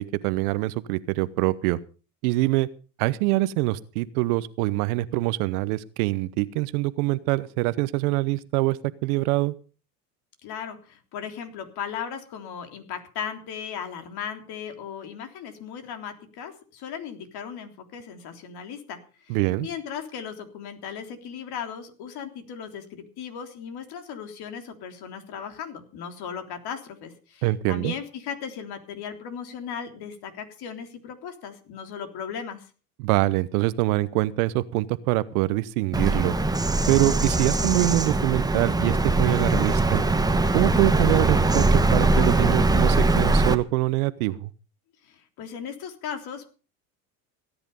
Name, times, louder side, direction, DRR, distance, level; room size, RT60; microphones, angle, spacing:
voice 1, 0.0-1.8 2.2-2.7 3.0-9.5 19.3-19.7 27.4-27.9 33.0-36.4 36.9-40.1 40.5-44.5, right 18 dB, 70° right, 17 dB, 1.1 m, -24 dB
voice 2, 10.4-32.7 45.0-46.5, left 7 dB, 55° left, 6 dB, 3.5 m, -37 dB
Bird vocalization bird call bird song, 35.9-43.5, right 2 dB, 10° right, 1.3 m, -21 dB
17.0 x 10.0 x 5.5 m, 0.37 s
hypercardioid pair, 90°, 46 cm